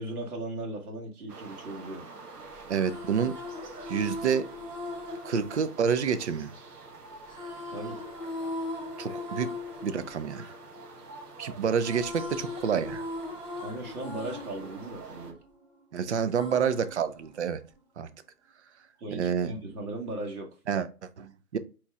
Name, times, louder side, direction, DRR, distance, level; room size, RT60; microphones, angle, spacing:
voice 1, 0.0-2.1 7.7-8.0 13.6-15.4 19.0-20.5, right 2 dB, 70° right, 1.8 m, -37 dB
sound 1, 1.3-15.3, right 4 dB, 85° right, 1.2 m, -48 dB
voice 2, 2.7-3.4 3.9-4.5 5.2-6.5 9.0-9.5 9.8-10.5 11.4-13.0 15.9-17.6 18.0-18.1 19.1-19.5 20.7-21.6, right 7 dB, 50° right, 0.6 m, -28 dB
sound 2, 2.8-6.7 7.3-11.3 11.6-15.8 16.3-17.8, left 2 dB, 10° right, 1.8 m, -40 dB
4.6 x 4.2 x 2.3 m
hypercardioid pair, 155°, 46 cm